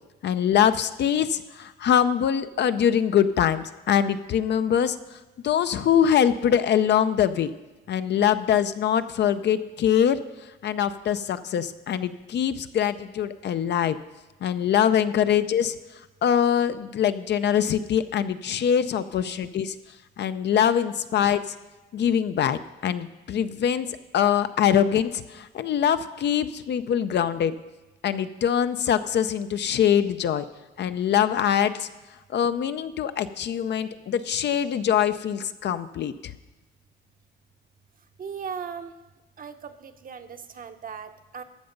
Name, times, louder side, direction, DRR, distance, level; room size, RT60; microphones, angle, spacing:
voice 1, 0.2-5.0 5.4-7.5 7.9-10.2 10.6-14.0 14.4-15.7 16.2-19.7 20.2-21.4 21.9-23.9 24.1-27.5 28.0-30.4 30.8-31.9 32.3-36.1, left 9 dB, 60° left, 11 dB, 0.6 m, -23 dB
voice 2, 38.2-38.9 39.4-41.4, right 6 dB, 45° right, 8 dB, 0.9 m, -37 dB
13.5 x 6.9 x 5.2 m, 1.1 s
cardioid pair, 90°, 20 cm